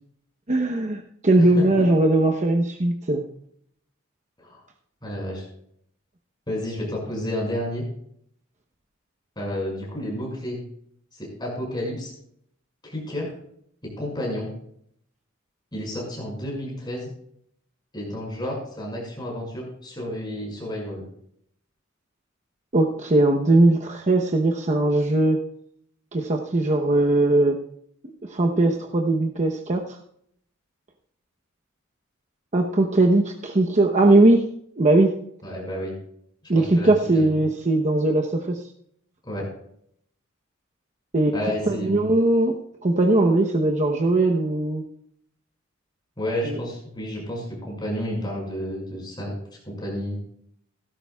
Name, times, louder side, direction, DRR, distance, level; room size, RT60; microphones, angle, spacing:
voice 1, 0.5-3.2 22.7-25.4 26.1-27.6 28.2-30.0 32.5-34.4 34.8-35.2 36.5-38.6 41.1-41.3 41.7-44.8 46.4-46.6, right 2 dB, 35° right, 2 dB, 0.9 m, -20 dB
voice 2, 5.0-5.4 6.5-7.8 9.4-10.6 11.1-12.1 12.8-13.3 13.8-14.5 15.7-17.1 17.9-21.0 35.4-35.9 36.5-37.3 39.2-39.5 41.3-42.1 46.2-49.4 49.6-50.2, equal, 20° left, -2 dB, 5.7 m, -31 dB
17.0 x 13.0 x 2.3 m, 0.67 s
head